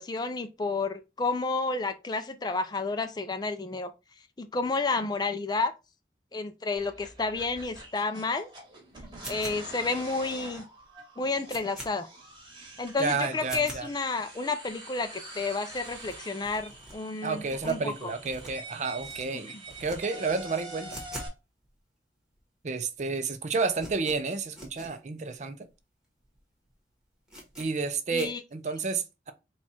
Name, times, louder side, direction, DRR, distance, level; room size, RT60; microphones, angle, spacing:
voice 1, 0.0-3.9 4.4-5.7 6.3-8.5 9.3-10.6 11.2-12.1 12.8-17.9 28.1-28.4, left 3 dB, 25° left, 0.4 m, -31 dB
sound 1, 6.8-21.3, right 2 dB, 25° right, 1.7 m, -46 dB
sound 2, 9.2-9.9 10.4-10.5 10.8-10.9 11.2-11.9 12.4-12.5 12.8-12.9 13.4-13.8 14.4-14.5 14.6-14.7 14.9-15.0 15.3-15.4 15.7-16.9 17.4-18.7 19.0-19.2 19.6-20.0 20.2-21.4 21.6-21.7 22.4-22.5 22.6-23.0 23.3-24.9 25.3-25.4 25.6-25.7 26.2-26.4 26.6-26.7 27.3-27.7 28.1-28.3, right 1 dB, 5° right, 1.3 m, -44 dB
voice 2, 13.0-13.9 17.2-21.0 22.6-25.6 27.6-29.3, right 4 dB, 40° right, 0.5 m, -31 dB
4.3 x 2.4 x 4.2 m
head